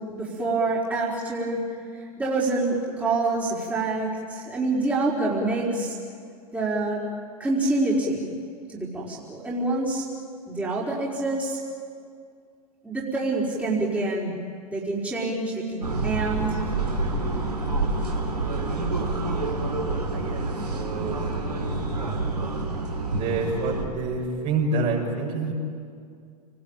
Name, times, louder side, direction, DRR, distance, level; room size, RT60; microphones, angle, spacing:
voice 1, 0.1-1.6 1.9-6.0 6.5-7.0 7.4-8.2 8.7-10.0 10.5-11.6 12.8-14.4 14.7-16.6, right 2 dB, 5° right, -6 dB, 5.0 m, -26 dB
sound 1, 15.8-23.8, right 2 dB, 85° right, 3.6 m, -27 dB
voice 2, 20.1-21.3 23.2-25.5, right 3 dB, 40° right, -1 dB, 6.6 m, -28 dB
29.5 x 20.0 x 9.2 m, 2.3 s
figure-of-eight pair, 95°, 20 cm